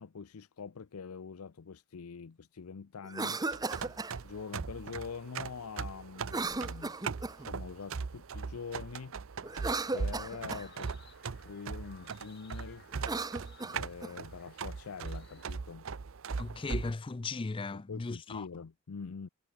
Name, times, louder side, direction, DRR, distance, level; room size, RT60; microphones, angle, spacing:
voice 1, 0.0-3.4 4.2-6.9 7.5-9.1 9.9-10.9 11.4-12.9 13.6-15.9 17.7-19.3, left 5 dB, 85° left, 0.6 m, -44 dB
Cough, 3.0-4.2 6.2-7.5 9.4-10.7 12.9-14.1, right 3 dB, 15° right, 0.7 m, -36 dB
sound 1, 3.5-16.9, right 5 dB, 65° right, 0.6 m, -40 dB
sound 2, 10.4-15.5, left 8 dB, 50° left, 7.8 m, -61 dB
voice 2, 16.4-18.5, left 3 dB, 25° left, 0.4 m, -37 dB
head